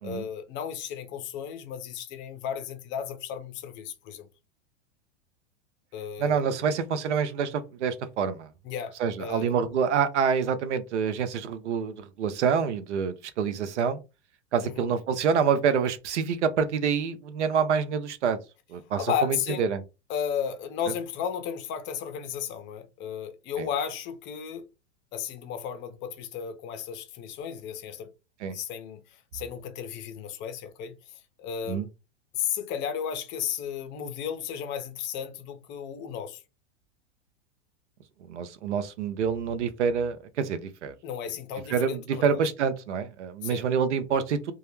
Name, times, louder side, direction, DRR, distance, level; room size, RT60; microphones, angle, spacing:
voice 1, 0.0-4.3 5.9-6.4 8.6-9.5 14.6-14.9 19.0-19.7 20.1-24.7 25.1-28.1 28.5-31.9 32.3-36.4 41.0-42.4 43.4-43.7, left 8 dB, 35° left, 0.5 m, -34 dB
voice 2, 6.2-8.5 9.0-14.0 14.5-18.4 18.7-19.8 23.6-23.7 28.4-28.6 31.7-31.9 38.3-40.9 41.7-44.5, right 6 dB, 85° right, 0.6 m, -27 dB
2.2 x 2.0 x 3.0 m
hypercardioid pair, 105°, 34 cm